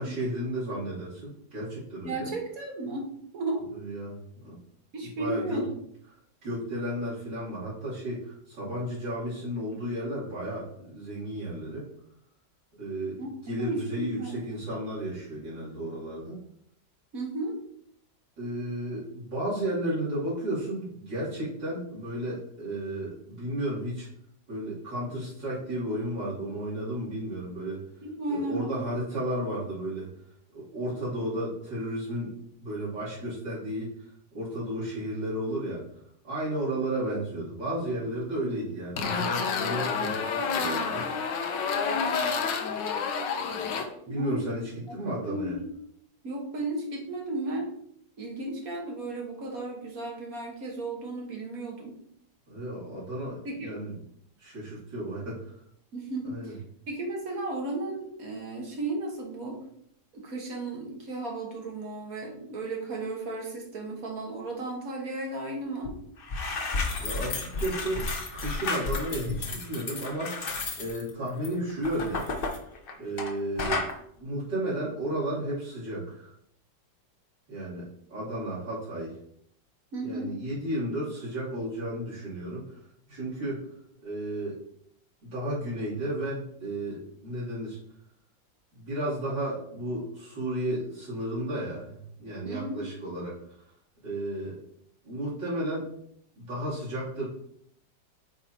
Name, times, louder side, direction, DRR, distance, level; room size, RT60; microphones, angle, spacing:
voice 1, 0.0-2.3 3.7-4.2 4.4-4.6 5.0-5.6 6.4-11.9 12.8-16.4 18.4-24.1 24.5-27.8 28.3-30.1 30.5-32.3 32.6-33.9 34.3-35.8 36.2-41.1 44.1-45.6 52.5-53.9 54.4-55.4 56.2-56.5 67.0-72.3 73.0-73.9 74.2-76.3 77.5-79.2 80.0-82.8 83.1-83.6 84.0-84.6 85.2-87.8 88.7-93.4 94.0-94.6 95.0-95.9 96.4-97.3, right 1 dB, 85° right, -11 dB, 3.7 m, -33 dB
voice 2, 2.0-3.1 3.3-3.7 4.9-5.7 13.2-13.3 13.7-14.4 17.1-17.5 28.0-28.9 44.1-44.4 45.3-45.7 46.2-47.7 48.2-52.0 53.5-53.7 55.9-56.6 56.9-59.6 60.1-65.9 79.9-80.4 92.4-92.8, right 2 dB, 50° right, 1 dB, 1.8 m, -34 dB
sound 1, 39.0-43.8, left 5 dB, 80° left, 1.5 m, -29 dB
sound 2, 65.8-65.9 66.2-73.3 73.6-73.9, left 3 dB, 45° left, 0.8 m, -32 dB
8.1 x 4.9 x 2.8 m, 0.69 s
omnidirectional pair, 1.9 m